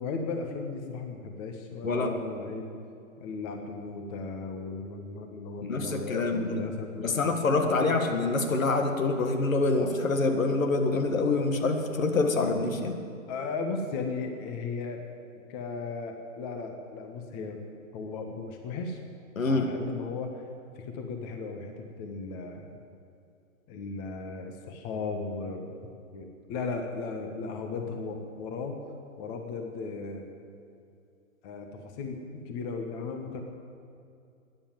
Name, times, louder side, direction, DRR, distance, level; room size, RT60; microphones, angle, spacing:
voice 1, 0.0-2.7 3.2-8.0 13.3-15.1 15.5-17.6 17.9-19.0 19.4-20.4 20.7-22.7 23.7-25.7 26.1-28.7 29.2-30.2 31.4-33.4, left 4 dB, 30° left, 4 dB, 1.4 m, -36 dB
voice 2, 1.8-2.2 5.7-6.7 7.0-13.0 19.4-19.7, left 3 dB, 75° left, 5 dB, 1.9 m, -26 dB
12.5 x 10.0 x 9.1 m, 2.5 s
hypercardioid pair, 130°, 41 cm